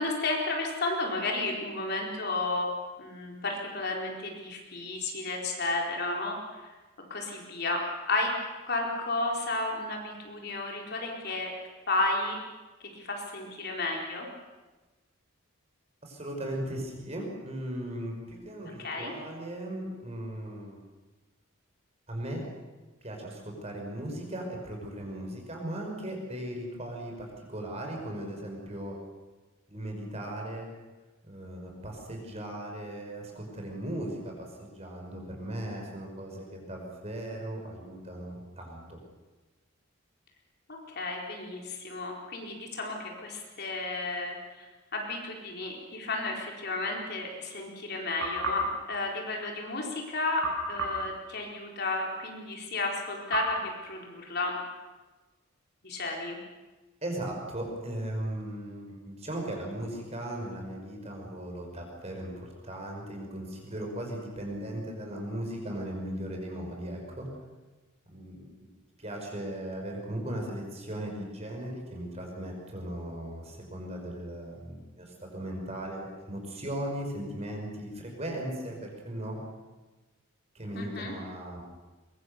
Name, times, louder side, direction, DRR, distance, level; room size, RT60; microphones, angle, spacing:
voice 1, 0.0-2.7 3.0-6.7 7.1-8.3 8.6-11.5 11.9-12.4 12.9-14.3 18.8-19.1 40.7-54.5 55.8-56.4 80.7-81.1, left 2 dB, 50° left, 0 dB, 4.3 m, -32 dB
voice 2, 16.0-20.8 22.1-22.4 23.0-29.0 29.7-30.7 31.2-39.0 57.0-67.3 68.1-68.5 69.0-79.4 80.5-81.6, right 1 dB, 30° right, 1 dB, 5.7 m, -37 dB
sound 1, 48.2-49.8 50.4-52.0 53.3-54.7, right 1 dB, 80° right, 5.9 m, -36 dB
23.5 x 23.0 x 6.8 m, 1.2 s
head